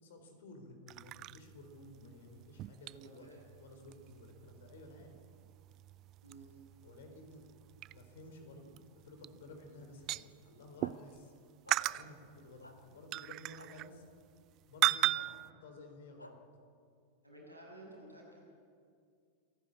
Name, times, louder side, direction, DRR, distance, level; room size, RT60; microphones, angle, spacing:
voice 1, 0.0-3.3 3.6-5.2 6.8-7.5 7.9-8.7 9.0-11.3 11.8-14.0 14.7-16.4, left 2 dB, 60° left, 6 dB, 4.1 m, -54 dB
sound 1, 0.9-11.2 11.7-14.5 14.8-15.5, right 16 dB, 35° right, 0.4 m, -39 dB
voice 2, 2.9-3.4 6.2-6.5 17.2-18.5, right 1 dB, 90° right, -3 dB, 7.1 m, -53 dB
sound 2, 10.8-10.9 11.6-11.8 12.6-12.7 13.6-13.7 15.1-15.3 16.2-16.3, left 1 dB, 85° left, 1.5 m, -51 dB
26.5 x 11.5 x 8.7 m, 2.3 s
figure-of-eight pair, 90°, 0 cm